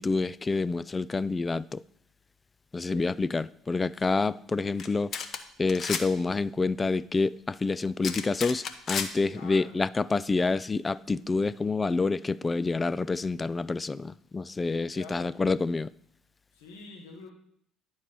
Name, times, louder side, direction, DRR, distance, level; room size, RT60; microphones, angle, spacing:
voice 1, 0.0-1.8 2.7-5.1 5.6-15.9, left 3 dB, 25° left, 0.3 m, -28 dB
sound 1, 4.8-4.9 5.1-5.4 5.7-6.0 8.0-9.1, left 6 dB, 55° left, 0.8 m, -31 dB
voice 2, 9.3-9.7 14.9-15.4 16.5-17.3, left 3 dB, 80° left, 1.9 m, -46 dB
10.0 x 4.5 x 5.9 m
hypercardioid pair, 60°, 0 cm